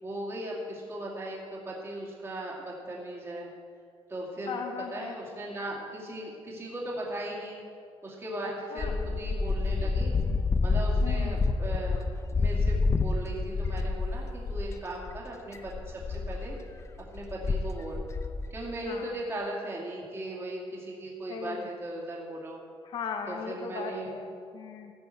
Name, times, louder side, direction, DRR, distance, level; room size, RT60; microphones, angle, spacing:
voice 1, 0.0-3.5 4.1-4.6 4.9-7.6 8.0-10.2 10.6-16.5 17.1-18.0 18.5-22.6 23.3-24.2, right 1 dB, 25° right, -3 dB, 2.4 m, -38 dB
voice 2, 4.5-5.2 8.7-9.0 11.0-11.4 18.9-19.1 21.3-21.7 22.8-24.9, left 5 dB, 55° left, 4 dB, 1.0 m, -37 dB
sound 1, 8.8-14.7 15.1-15.2 15.5-18.5, left 4 dB, 30° left, 0.6 m, -28 dB
16.0 x 6.3 x 7.9 m, 2.3 s
cardioid pair, 155°, 10 cm